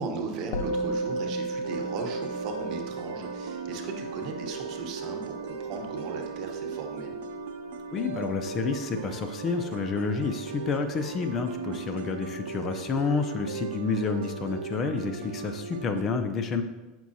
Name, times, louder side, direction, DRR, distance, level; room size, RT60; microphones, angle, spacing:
voice 1, 0.0-7.1 11.7-11.8, right 4 dB, 50° right, 4 dB, 1.1 m, -37 dB
Musical instrument, 0.5-10.0, right 1 dB, 70° left, 0.8 m, -36 dB
sound 1, 1.6-16.0, right 5 dB, 80° right, 0.6 m, -37 dB
voice 2, 7.9-16.6, left 4 dB, 30° left, 8 dB, 0.5 m, -29 dB
8.4 x 6.0 x 2.7 m, 1.1 s
supercardioid pair, 140°, 0 cm